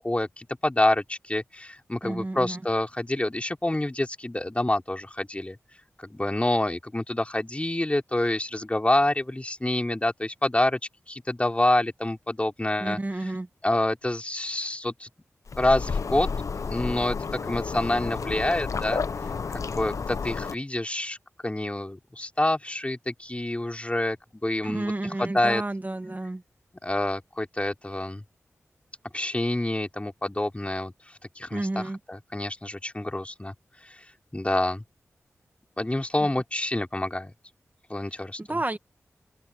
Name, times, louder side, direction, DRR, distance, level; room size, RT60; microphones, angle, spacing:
voice 1, 0.0-5.6 6.0-10.8 11.1-13.3 13.6-15.1 15.6-16.3 16.7-19.0 19.5-21.2 21.4-24.2 24.4-25.6 26.8-28.2 29.1-30.9 31.4-33.5 33.8-34.0 34.3-34.8 35.8-37.3 37.9-38.6, left 1 dB, 20° left, 4.3 m, -27 dB
voice 2, 2.0-2.6 12.8-13.5 24.6-26.4 31.5-32.0 38.5-38.8, right 2 dB, 30° right, 1.7 m, -30 dB
sound 1, 15.5-20.6, left 5 dB, 70° left, 0.9 m, -31 dB
open air
cardioid pair, 40°, 6 cm